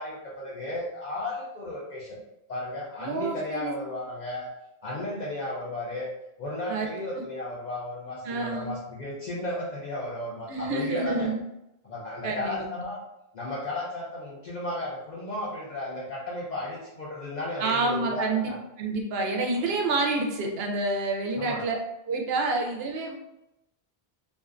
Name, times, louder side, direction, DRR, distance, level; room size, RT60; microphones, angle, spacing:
voice 1, 0.0-2.2 2.5-4.5 4.8-6.1 6.4-11.3 11.8-13.0 13.3-18.6 19.5-19.6 21.4-21.6, left 1 dB, 55° left, -5 dB, 0.6 m, -34 dB
voice 2, 3.0-3.7 6.7-6.9 8.2-8.7 10.5-11.4 12.2-12.9 17.6-18.5 18.8-21.8 22.1-23.2, right 3 dB, 75° right, 1 dB, 0.8 m, -28 dB
2.4 x 2.3 x 2.3 m, 0.86 s
omnidirectional pair, 1.1 m